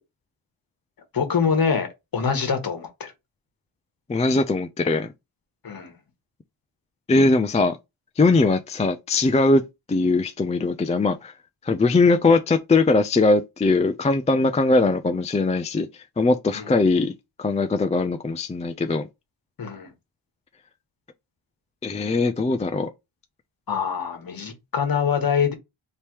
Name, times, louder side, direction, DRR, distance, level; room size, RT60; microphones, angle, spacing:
voice 1, 1.1-1.9 2.1-3.1 5.6-5.9 16.5-16.7 19.6-19.9 23.7-25.5, left 6 dB, 45° left, 1.5 m, -24 dB
voice 2, 4.1-5.1 7.1-7.8 8.2-9.6 9.9-11.3 11.7-15.9 16.2-17.1 17.4-19.1 21.8-22.9, left 3 dB, 15° left, 0.3 m, -20 dB
3.4 x 2.9 x 4.5 m
wide cardioid pair, 145°, 48 cm